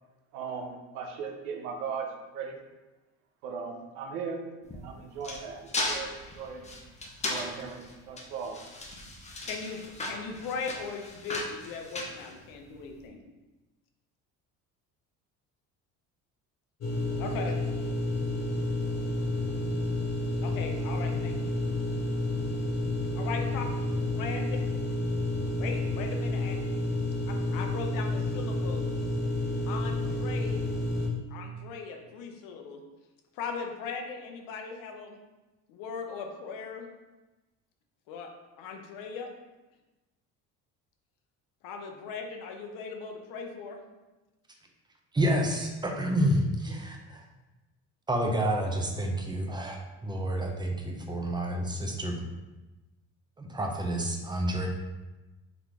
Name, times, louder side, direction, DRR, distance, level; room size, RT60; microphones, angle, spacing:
voice 1, 0.3-2.6 3.4-6.7 7.2-8.6, right 5 dB, 85° right, 4 dB, 0.7 m, -38 dB
sound 1, 4.6-12.9, left 2 dB, 20° left, 0.7 m, -37 dB
voice 2, 9.4-13.2 17.2-17.6 20.4-21.5 23.1-23.7 24.2-24.5 25.6-26.6 27.3-28.9 29.7-30.6 31.3-32.8 33.3-35.2 35.7-36.9 38.1-38.3 38.6-39.3 41.6-43.8, left 5 dB, 75° left, 3 dB, 0.7 m, -38 dB
sound 2, 16.8-31.1, left 2 dB, 50° left, 1.0 m, -30 dB
voice 3, 45.1-47.2 48.1-52.2 53.4-54.7, right 1 dB, 15° right, 2 dB, 0.6 m, -29 dB
4.0 x 3.0 x 3.4 m, 1.1 s
cardioid pair, 105°, 33 cm